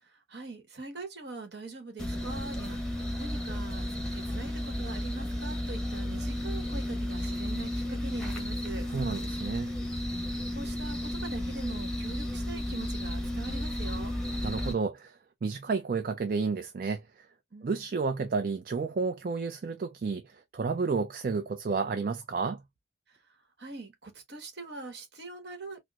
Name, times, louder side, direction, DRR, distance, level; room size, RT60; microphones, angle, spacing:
voice 1, 0.3-3.8 4.1-8.9 10.5-14.1 17.5-17.8 23.6-25.8, right 3 dB, 60° right, 1.1 m, -42 dB
sound 1, 2.0-14.7, left 1 dB, 5° left, 0.9 m, -33 dB
voice 2, 8.9-9.7 14.4-15.1 15.4-17.3 17.6-22.6, right 4 dB, 45° right, 0.4 m, -31 dB
4.3 x 2.0 x 2.3 m
head